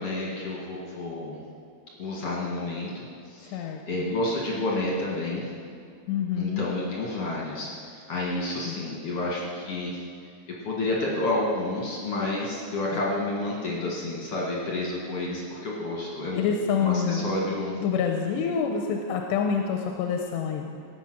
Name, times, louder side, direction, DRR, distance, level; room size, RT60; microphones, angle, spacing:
voice 1, 0.0-1.4 2.0-5.5 6.3-10.0 10.6-16.6 16.8-17.7, left 2 dB, 50° left, -4 dB, 2.1 m, -30 dB
voice 2, 3.5-4.1 6.1-6.7 8.7-8.8 12.9-13.0 16.3-17.3 17.7-20.7, left 6 dB, 90° left, 3 dB, 3.0 m, -27 dB
17.5 x 8.2 x 6.2 m, 2.4 s
omnidirectional pair, 4.9 m